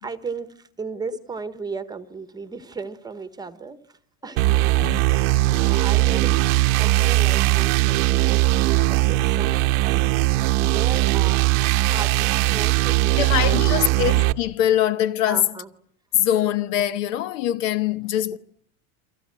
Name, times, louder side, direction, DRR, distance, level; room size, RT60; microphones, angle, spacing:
voice 1, 0.0-4.7 5.1-6.4 6.8-10.1 10.4-11.5 11.8-14.0 15.3-15.7 18.3-18.4, right 5 dB, 10° right, 1.1 m, -36 dB
sound 1, 4.4-14.3, right 17 dB, 85° right, 1.1 m, -20 dB
voice 2, 13.2-15.5 16.1-18.4, left 11 dB, 75° left, 1.3 m, -23 dB
29.5 x 23.5 x 7.5 m
cardioid pair, 165°, 39 cm